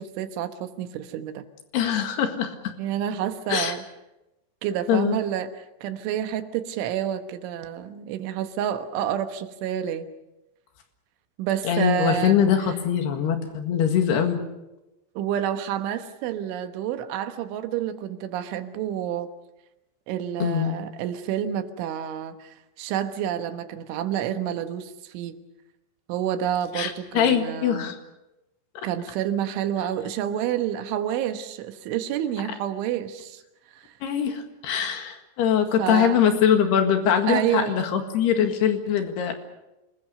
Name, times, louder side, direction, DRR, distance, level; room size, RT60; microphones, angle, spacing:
voice 1, 0.0-1.5 2.8-3.8 4.6-10.1 11.4-12.4 15.2-19.3 20.1-25.4 26.1-27.9 28.8-33.4 33.7-33.9 35.8-36.2 37.2-37.8, right 10 dB, 85° right, 9 dB, 3.7 m, -29 dB
voice 2, 1.7-2.6 3.5-3.7 4.9-5.2 11.6-14.4 20.4-20.8 26.7-28.0 28.8-28.9 34.0-39.3, left 8 dB, 65° left, 6 dB, 3.6 m, -22 dB
28.5 x 20.5 x 6.7 m, 0.97 s
omnidirectional pair, 5.4 m